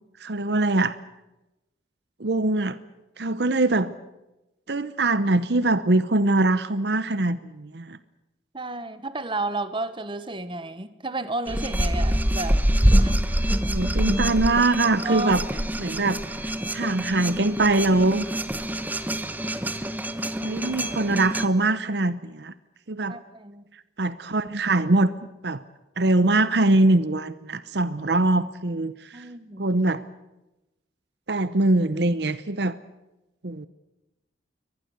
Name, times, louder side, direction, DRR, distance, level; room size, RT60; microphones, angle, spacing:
voice 1, 0.2-1.0 2.2-2.8 3.2-3.9 4.7-8.0 13.7-15.4 15.8-18.3 20.4-22.5 22.9-23.2 24.0-25.1 25.4-25.6 26.0-29.2 29.6-30.1 31.3-32.8 33.4-33.7, right 2 dB, 65° right, 14 dB, 0.9 m, -23 dB
voice 2, 8.5-12.6 13.0-13.2 15.0-15.4 23.1-23.6 29.1-29.7, right 2 dB, 30° right, 12 dB, 1.4 m, -32 dB
sound 1, 11.5-21.5, equal, 10° right, 1.1 m, -25 dB
23.5 x 20.0 x 8.2 m, 0.97 s
head